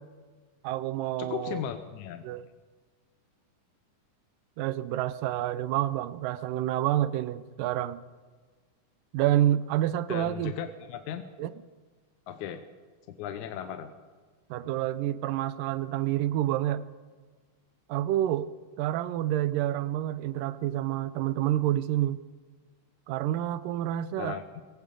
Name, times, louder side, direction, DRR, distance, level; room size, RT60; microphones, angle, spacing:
voice 1, 0.6-1.6 2.2-2.5 4.6-8.0 9.1-10.5 11.4-11.5 14.5-16.8 17.9-18.5 18.8-22.2 23.1-24.4, right 13 dB, 85° right, 15 dB, 2.3 m, -28 dB
voice 2, 1.2-2.2 10.1-11.2 12.3-12.6 13.2-13.9 24.2-24.4, left 9 dB, 75° left, 8 dB, 2.0 m, -36 dB
22.5 x 16.5 x 3.8 m, 1.4 s
omnidirectional pair, 3.8 m